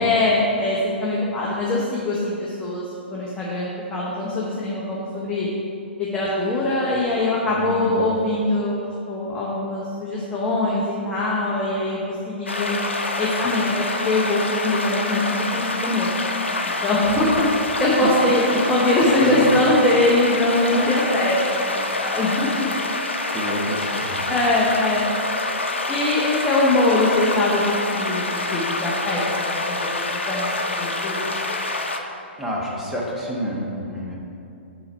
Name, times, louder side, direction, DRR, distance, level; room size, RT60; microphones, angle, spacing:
voice 1, 0.0-2.8 3.1-5.5 6.0-12.7 13.2-16.1 16.6-22.5 24.3-25.0 25.9-29.7 30.1-30.5 30.8-31.2, left 2 dB, 15° left, -6 dB, 0.9 m, -22 dB
voice 2, 7.5-7.9 17.0-17.3 18.0-18.6 19.2-19.5 23.3-24.2 32.4-34.2, right 1 dB, 5° right, -5 dB, 1.2 m, -28 dB
sound 1, 12.5-32.0, left 2 dB, 80° left, 0.6 m, -26 dB
6.9 x 4.0 x 4.3 m, 2.7 s
figure-of-eight pair, 120°, 6 cm